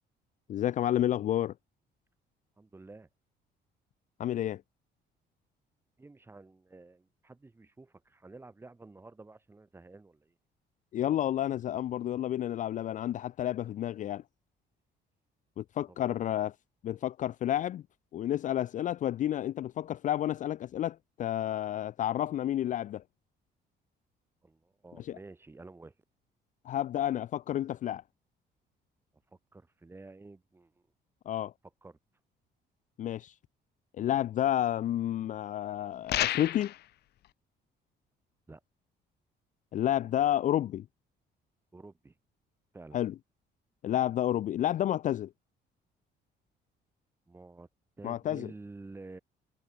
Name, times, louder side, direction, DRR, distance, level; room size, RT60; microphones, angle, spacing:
voice 1, 0.5-1.5 4.2-4.6 10.9-14.2 15.6-16.5 16.8-17.8 18.1-23.0 25.0-25.2 26.6-28.0 31.3-31.5 33.0-33.3 34.0-36.7 39.7-40.8 42.9-43.1 43.8-45.3 48.0-48.5, left 12 dB, 45° left, 0.5 m, -30 dB
voice 2, 2.6-3.1 6.0-10.3 15.9-16.2 24.4-25.9 29.5-30.7 31.8-32.0 38.5-38.6 41.7-42.1 42.7-43.0 47.3-47.7 48.0-49.2, right 3 dB, 10° right, 4.4 m, -50 dB
sound 1, 36.1-36.8, left 14 dB, 60° left, 0.9 m, -30 dB
cardioid pair, 170°, 19 cm